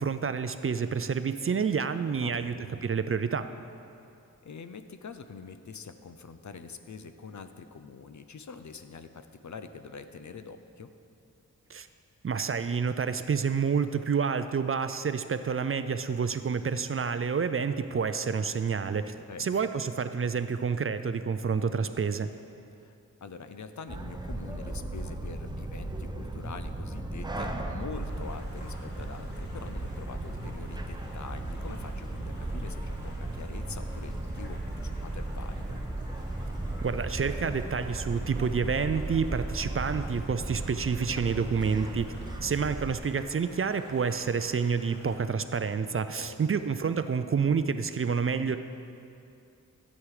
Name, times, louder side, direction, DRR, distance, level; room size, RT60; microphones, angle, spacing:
voice 1, 0.0-2.5 2.8-3.5 11.7-11.9 12.2-19.1 19.4-22.3 36.8-42.1 42.4-48.6, right 6 dB, 40° right, 10 dB, 0.4 m, -29 dB
voice 2, 2.1-2.9 4.4-10.9 19.2-19.8 22.8-22.9 23.2-35.8 41.0-41.4 45.8-46.6 48.1-48.6, left 5 dB, 60° left, 9 dB, 0.7 m, -45 dB
sound 1, 23.9-42.9, right 1 dB, 15° right, 0.8 m, -36 dB
sound 2, 27.9-45.1, equal, 35° left, 3.0 m, -52 dB
14.5 x 8.4 x 4.9 m, 2.7 s
wide cardioid pair, 125°, 32 cm